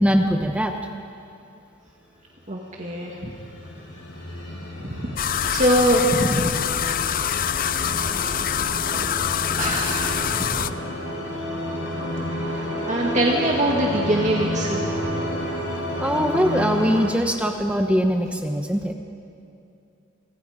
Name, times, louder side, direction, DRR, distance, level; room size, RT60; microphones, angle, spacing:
voice 1, 0.0-0.7 16.0-18.9, equal, 5° right, 4 dB, 1.1 m, -21 dB
voice 2, 2.5-3.3 4.8-6.5 8.0-8.5 8.9-9.0 9.6-10.7 12.5-12.6 12.9-14.9, right 1 dB, 35° right, -1 dB, 2.0 m, -24 dB
sound 1, 2.8-17.1, left 1 dB, 80° left, 7.7 m, -30 dB
sound 2, 5.2-10.7, left 9 dB, 45° left, 0.5 m, -25 dB
27.5 x 25.0 x 5.1 m, 2.5 s
head